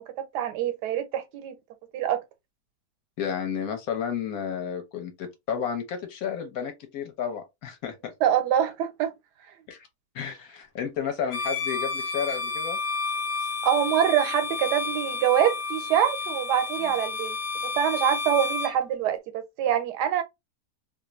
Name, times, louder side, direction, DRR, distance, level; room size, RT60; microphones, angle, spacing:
voice 1, 0.0-1.5 1.9-2.2 8.2-9.1 13.6-17.4 17.6-20.2, right 10 dB, 85° right, 1.2 m, -25 dB
voice 2, 3.2-8.1 9.7-9.9 10.1-12.8 13.4-13.5 16.8-17.0, left 7 dB, 65° left, 1.2 m, -32 dB
Bowed string instrument, 11.3-18.8, left 4 dB, 85° left, 1.2 m, -31 dB
2.9 x 2.5 x 3.0 m
omnidirectional pair, 1.7 m